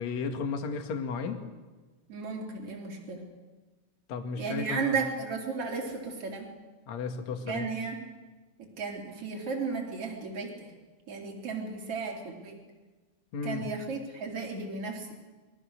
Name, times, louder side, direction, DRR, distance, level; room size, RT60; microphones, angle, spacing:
voice 1, 0.0-1.4 4.1-5.0 6.9-7.7 13.3-13.6, left 5 dB, 50° left, 4 dB, 2.2 m, -33 dB
voice 2, 2.1-3.2 4.4-6.5 7.4-8.0 8.6-10.7 11.1-12.6 13.4-15.1, right 4 dB, 30° right, 0 dB, 4.2 m, -34 dB
29.0 x 23.0 x 6.7 m, 1.3 s
omnidirectional pair, 5.9 m